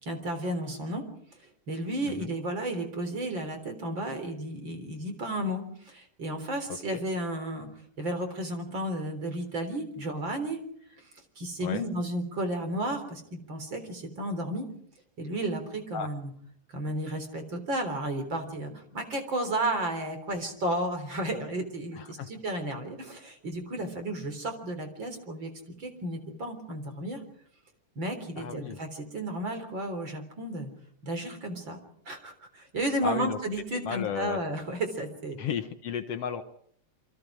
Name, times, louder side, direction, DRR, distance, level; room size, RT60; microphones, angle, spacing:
voice 1, 0.0-1.0 1.7-7.7 8.0-10.6 11.4-14.7 15.2-16.3 16.7-25.5 25.8-27.2 28.0-30.7 31.0-31.8 32.1-35.4, right 1 dB, 35° right, 7 dB, 4.2 m, -33 dB
voice 2, 6.7-7.0 11.6-11.8 15.9-16.1 21.9-22.3 28.4-28.8 33.0-33.4 33.7-34.4 35.4-36.4, left 7 dB, 60° left, 9 dB, 1.9 m, -34 dB
28.0 x 25.0 x 5.0 m, 0.66 s
omnidirectional pair, 3.6 m